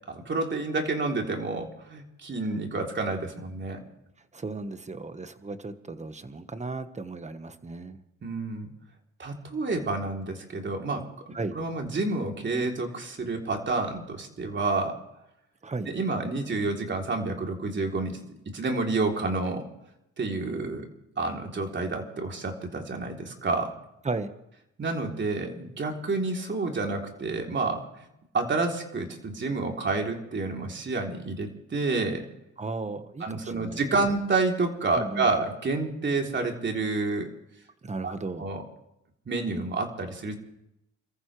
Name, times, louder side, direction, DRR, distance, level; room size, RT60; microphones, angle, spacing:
voice 1, 0.1-3.8 8.2-8.7 9.2-15.0 15.9-18.2 18.5-19.7 20.2-20.9 21.2-23.7 24.8-28.1 28.3-32.3 33.2-37.3 38.0-38.1 38.4-38.6 39.3-40.4, right 3 dB, 40° right, 1 dB, 3.5 m, -29 dB
voice 2, 4.3-8.0 11.3-11.6 15.6-15.9 24.0-24.3 32.6-34.1 35.0-35.3 37.8-38.5, right 3 dB, 25° right, 10 dB, 1.4 m, -35 dB
28.5 x 14.5 x 3.3 m, 0.83 s
cardioid pair, 90°, 30 cm